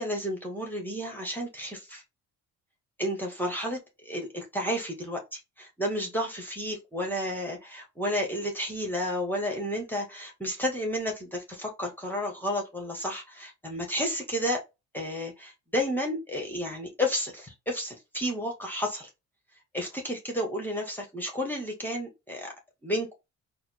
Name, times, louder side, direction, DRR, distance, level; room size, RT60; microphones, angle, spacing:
voice 1, 0.0-2.0 3.0-14.6 14.9-19.1 19.7-22.5 22.8-23.1, equal, 5° left, 1.3 m, -32 dB
4.2 x 2.2 x 4.1 m
cardioid pair, 90°, 30 cm